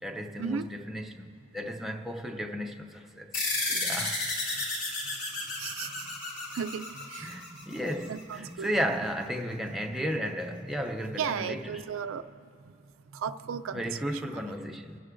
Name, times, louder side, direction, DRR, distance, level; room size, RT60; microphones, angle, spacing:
voice 1, 0.0-3.3 3.7-4.3 7.2-11.9 13.7-15.0, equal, ahead, 0.5 m, -34 dB
sound 1, 3.3-8.2, left 2 dB, 50° left, 4.0 m, -33 dB
voice 2, 5.6-5.9 6.5-6.8 7.1-7.3 8.1-8.7 11.2-12.2 13.1-14.5, right 7 dB, 85° right, 0.4 m, -35 dB
29.0 x 11.0 x 2.5 m
head